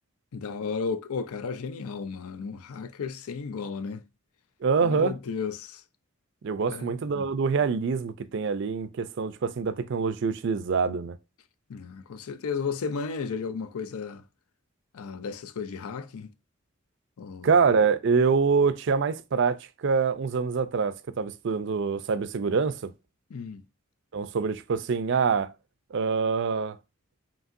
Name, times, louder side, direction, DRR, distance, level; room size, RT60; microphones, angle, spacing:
voice 1, 0.3-4.0 4.8-5.8 6.7-7.2 11.7-14.2 14.9-16.3 17.2-17.5 23.3-23.6, left 5 dB, 85° left, 0.5 m, -34 dB
voice 2, 4.6-5.1 6.4-11.2 17.4-22.9 24.1-25.5 25.9-26.8, right 5 dB, 55° right, 0.4 m, -25 dB
5.3 x 2.8 x 2.5 m
head